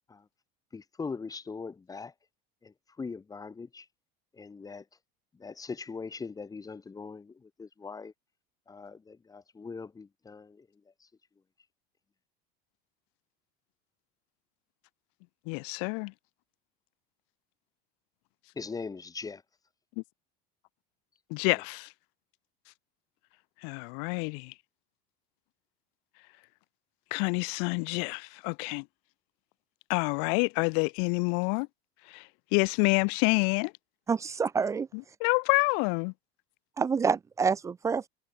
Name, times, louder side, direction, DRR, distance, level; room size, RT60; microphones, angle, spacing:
voice 1, 0.7-2.1 2.6-3.9 4.3-4.8 5.3-8.1 8.7-10.7 11.0-11.1 18.5-19.4, left 4 dB, 20° left, 4.8 m, -41 dB
voice 2, 15.5-16.1 21.3-21.9 23.6-24.5 27.1-28.8 29.9-31.7 32.1-32.2 32.5-33.7 35.2-36.1, left 40 dB or more, 75° left, 1.1 m, -27 dB
voice 3, 34.1-34.9 36.8-38.1, right 5 dB, 15° right, 0.3 m, -27 dB
cardioid pair, 130°, 20 cm